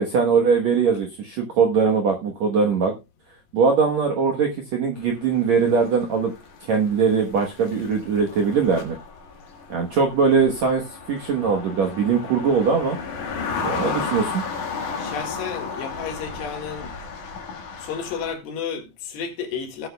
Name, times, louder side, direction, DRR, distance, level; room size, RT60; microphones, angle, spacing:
voice 1, 0.0-2.9 3.5-6.3 6.7-9.0 9.7-10.8 11.1-13.0 13.6-14.4, right 5 dB, 70° right, 1.7 m, -21 dB
sound 1, 5.0-18.3, left 5 dB, 55° left, 2.8 m, -33 dB
voice 2, 15.0-16.9 17.8-19.9, left 6 dB, 75° left, 3.9 m, -32 dB
17.5 x 8.2 x 2.3 m
omnidirectional pair, 4.9 m